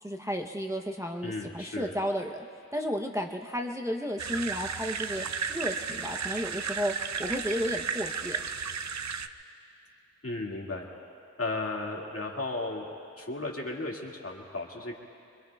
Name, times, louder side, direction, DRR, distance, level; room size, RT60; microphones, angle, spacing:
voice 1, 0.0-2.4 2.7-6.9 7.2-8.4, equal, 10° right, 1 dB, 0.7 m, -33 dB
voice 2, 1.2-2.0 10.2-10.9 11.4-12.9 13.2-15.0, left 2 dB, 50° left, -1 dB, 2.0 m, -35 dB
sound 1, 4.2-9.3, right 6 dB, 70° right, 0.5 m, -34 dB
25.0 x 25.0 x 2.3 m, 2.6 s
wide cardioid pair, 55°, 29 cm